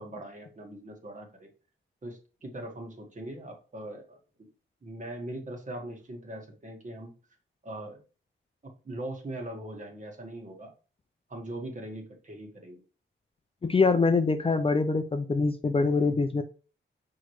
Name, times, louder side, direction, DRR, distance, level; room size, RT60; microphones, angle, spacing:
voice 1, 0.0-1.5 2.0-4.5 4.8-7.1 7.6-8.0 8.8-10.7 11.3-12.8, right 1 dB, 35° right, 3 dB, 1.7 m, -41 dB
voice 2, 13.6-16.4, left 4 dB, 25° left, 8 dB, 0.5 m, -24 dB
6.3 x 4.8 x 3.1 m, 0.35 s
wide cardioid pair, 135°, 21 cm